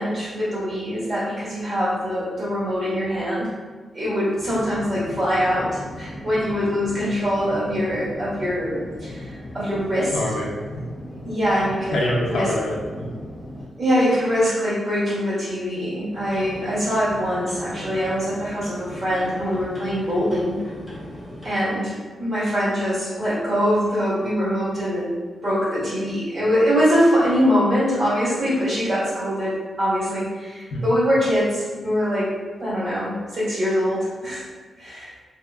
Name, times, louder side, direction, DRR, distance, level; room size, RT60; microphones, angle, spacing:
voice 1, 0.0-3.5 3.9-10.1 11.2-12.0 12.3-12.5 13.8-20.6 21.4-25.1 25.4-32.3 32.6-34.4 34.8-35.1, equal, 45° right, -10 dB, 1.4 m, -23 dB
sound 1, 4.4-13.6, left 1 dB, 35° left, 0.5 m, -38 dB
voice 2, 10.1-10.8 11.9-13.1 30.7-30.8, left 1 dB, 90° left, -2 dB, 0.5 m, -25 dB
sound 2, 16.1-21.5, equal, 15° right, 0.9 m, -38 dB
2.7 x 2.4 x 2.3 m, 1.4 s
wide cardioid pair, 120°, 0 cm